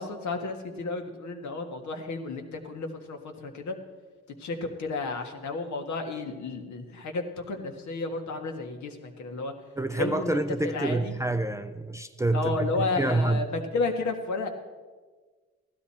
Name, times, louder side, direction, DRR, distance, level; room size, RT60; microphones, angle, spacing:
voice 1, 0.0-3.8 4.4-9.5 9.9-11.2 12.3-14.5, left 3 dB, 65° left, 1.7 m, -32 dB
voice 2, 9.8-13.4, right 2 dB, 10° right, 0.5 m, -27 dB
15.0 x 12.5 x 4.3 m
cardioid pair, 90°, 30 cm